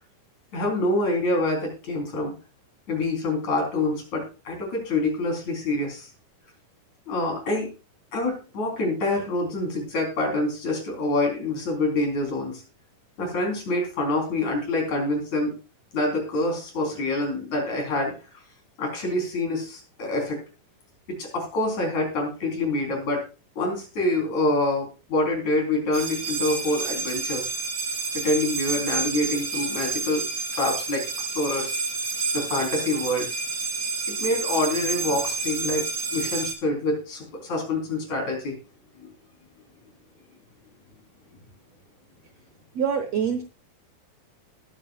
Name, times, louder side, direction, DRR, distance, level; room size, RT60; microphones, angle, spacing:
voice 1, 0.5-2.3 2.9-6.1 7.1-7.7 8.1-12.6 13.2-15.5 15.9-18.2 18.8-20.4 21.2-23.2 23.6-27.4 28.1-30.2 30.5-31.8 32.3-33.3 34.1-35.8 36.1-38.6 39.0-39.1, left 2 dB, 55° left, 1 dB, 4.9 m, -26 dB
sound 1, 25.9-36.5, right 4 dB, 50° right, 3.5 m, -29 dB
voice 2, 42.7-43.4, right 7 dB, 70° right, 7 dB, 1.6 m, -25 dB
19.5 x 8.8 x 2.4 m, 0.34 s
omnidirectional pair, 4.0 m